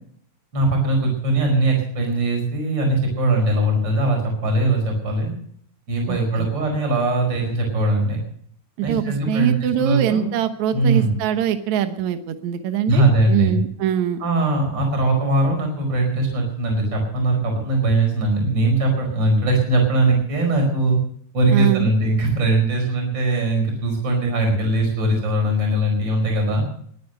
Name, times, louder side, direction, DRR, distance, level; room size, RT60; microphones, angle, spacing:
voice 1, 0.5-5.3 5.9-8.2 8.8-10.3 10.7-11.1 12.9-13.6 14.2-21.0 21.3-26.6, right 2 dB, 35° right, 1 dB, 5.5 m, -20 dB
voice 2, 6.1-6.5 8.8-13.0 13.3-14.2 21.5-21.9, right 10 dB, 75° right, 9 dB, 2.4 m, -23 dB
22.5 x 9.4 x 6.6 m, 0.62 s
omnidirectional pair, 3.4 m